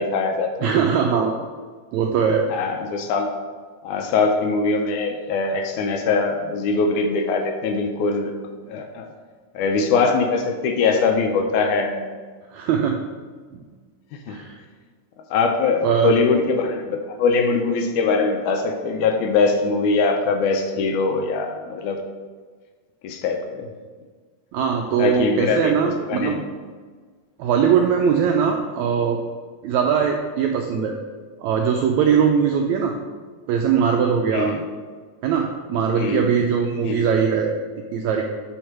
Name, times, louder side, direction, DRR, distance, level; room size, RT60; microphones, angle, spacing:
voice 1, 0.0-1.3 2.5-3.3 3.8-8.3 8.7-9.1 9.5-12.0 14.1-14.4 15.3-22.0 23.0-23.7 25.0-25.8 26.1-26.5 34.3-34.6 36.0-36.3 36.8-37.1, left 4 dB, 80° left, 4 dB, 1.9 m, -22 dB
voice 2, 0.6-1.3 1.9-2.5 12.5-13.0 14.3-14.6 15.8-16.1 24.5-26.4 27.4-29.2 29.6-31.0 31.4-33.0 33.5-34.5 35.2-37.5 37.9-38.2, right 7 dB, 85° right, 2 dB, 1.6 m, -20 dB
7.8 x 3.6 x 5.8 m, 1.5 s
omnidirectional pair, 3.8 m